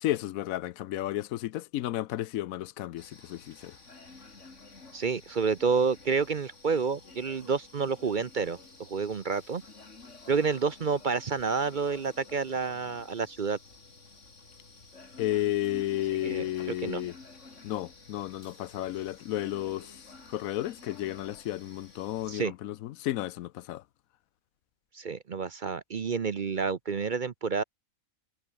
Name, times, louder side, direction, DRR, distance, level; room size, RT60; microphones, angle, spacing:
voice 1, 0.0-3.8 15.2-17.2 17.6-20.0 20.3-23.8, left 14 dB, 85° left, 1.0 m, -32 dB
sound 1, 3.0-22.4, left 3 dB, 60° left, 3.4 m, -51 dB
voice 2, 4.9-9.6 10.3-13.6 16.2-16.5 16.8-17.0 22.3-22.5 24.9-27.6, right 5 dB, 45° right, 0.7 m, -29 dB
omnidirectional pair, 1.4 m